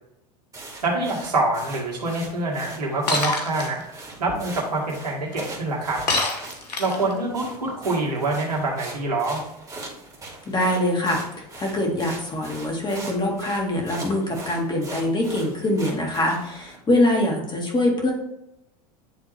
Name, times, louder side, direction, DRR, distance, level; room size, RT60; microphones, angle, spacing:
sound 1, 0.5-16.8, right 2 dB, 20° right, 2.4 m, -41 dB
voice 1, 0.8-6.0 6.8-9.4, right 2 dB, 85° right, -1 dB, 1.9 m, -26 dB
Shatter, 3.1-3.7 6.1-7.1, left 3 dB, 85° left, 1.3 m, -24 dB
voice 2, 10.5-11.2 11.6-18.1, left 1 dB, 20° left, 0 dB, 2.1 m, -23 dB
9.9 x 3.6 x 3.4 m, 0.85 s
hypercardioid pair, 90°, 20 cm